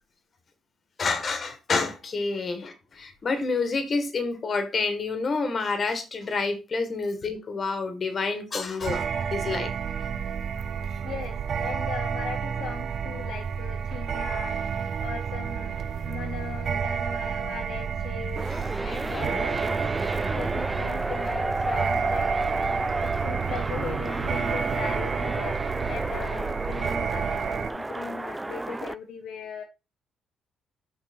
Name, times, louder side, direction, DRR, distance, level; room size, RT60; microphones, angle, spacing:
voice 1, 1.0-9.7 18.5-18.7, left 4 dB, 40° left, 1.9 m, -28 dB
sound 1, 8.8-27.7, right 7 dB, 60° right, 0.7 m, -30 dB
sound 2, 10.5-21.5 21.9-22.0 22.4-23.1, right 9 dB, 85° right, 1.1 m, -48 dB
voice 2, 11.0-14.6 15.0-15.7 16.0-18.4 18.8-19.9 20.3-22.3 23.0-25.6 25.9-29.6, left 7 dB, 75° left, 0.8 m, -38 dB
sound 3, 18.4-28.9, right 2 dB, 15° right, 0.3 m, -31 dB
6.0 x 5.0 x 4.4 m
cardioid pair, 90°, 0 cm